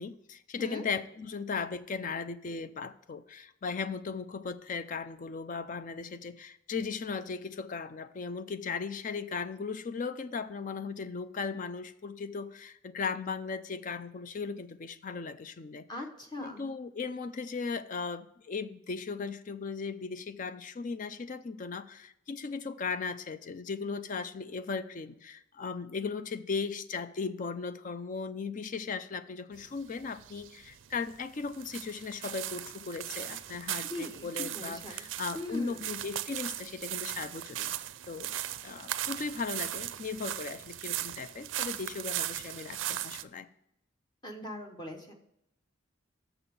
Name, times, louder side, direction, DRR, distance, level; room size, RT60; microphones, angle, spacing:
voice 1, 0.0-15.9 16.4-37.7 38.1-38.4 38.6-43.5, left 5 dB, 40° left, 13 dB, 0.4 m, -37 dB
voice 2, 15.9-16.7 33.8-35.1 35.3-35.8 44.2-45.2, left 2 dB, 20° left, 3 dB, 1.0 m, -41 dB
sound 1, 29.5-43.2, right 13 dB, 70° right, 0.4 m, -38 dB
6.9 x 5.6 x 6.9 m, 0.80 s
head